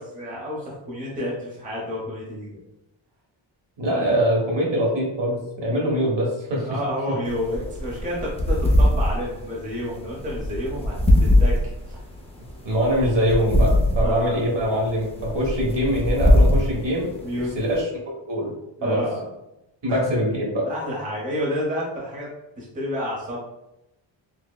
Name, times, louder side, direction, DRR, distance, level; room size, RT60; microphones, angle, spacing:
voice 1, 0.0-2.6 6.6-11.6 11.9-12.0 13.7-14.4 17.2-17.5 18.8-19.2 19.9-20.1 20.6-22.3 22.6-23.4, equal, 15° right, -4 dB, 0.8 m, -30 dB
voice 2, 3.8-6.7 7.5-7.6 12.6-13.7 13.9-17.1 17.5-17.9 18.2-18.5 18.8-19.0 19.8-20.6, equal, 65° right, -3 dB, 1.3 m, -23 dB
sound 1, 7.3-17.8, left 1 dB, 15° left, 0.4 m, -22 dB
5.9 x 2.1 x 2.3 m, 0.89 s
wide cardioid pair, 175°, 48 cm